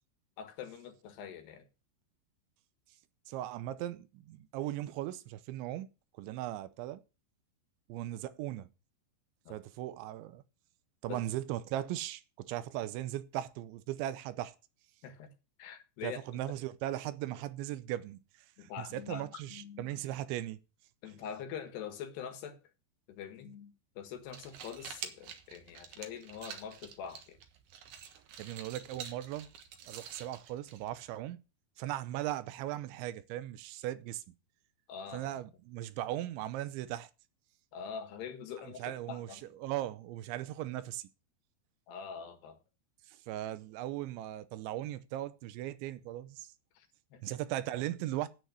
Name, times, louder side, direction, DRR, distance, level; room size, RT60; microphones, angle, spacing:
voice 1, 0.4-1.6 9.5-9.6 11.1-11.2 15.0-15.3 15.6-16.4 18.6-19.9 21.0-22.6 23.1-27.4 34.9-35.3 37.7-39.4 41.9-42.6 46.8-47.2, left 7 dB, 70° left, 3.5 m, -44 dB
voice 2, 3.3-5.9 6.2-7.0 7.9-8.7 9.5-10.4 11.0-14.5 16.0-18.2 18.6-20.6 28.4-29.5 29.9-31.4 31.8-34.2 35.1-37.1 38.6-41.1 43.1-46.5 47.2-48.3, right 13 dB, 85° right, 3.1 m, -38 dB
sound 1, 24.1-31.2, right 8 dB, 60° right, 2.6 m, -48 dB
10.0 x 8.9 x 6.3 m
omnidirectional pair, 5.2 m